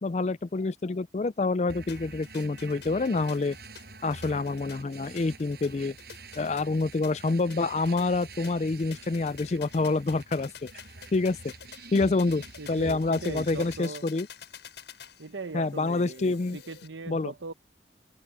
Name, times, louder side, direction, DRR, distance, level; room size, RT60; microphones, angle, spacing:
voice 1, 0.0-3.6 4.0-6.0 6.4-10.5 11.1-11.4 11.9-14.3 15.5-16.6 17.1-17.3, left 3 dB, 40° left, 0.4 m, -27 dB
sound 1, 1.7-13.8, right 3 dB, 60° right, 5.7 m, -47 dB
sound 2, 1.9-16.9, left 7 dB, 70° left, 6.3 m, -49 dB
voice 2, 12.6-14.0 15.2-17.5, right 3 dB, 80° right, 1.0 m, -39 dB
open air
head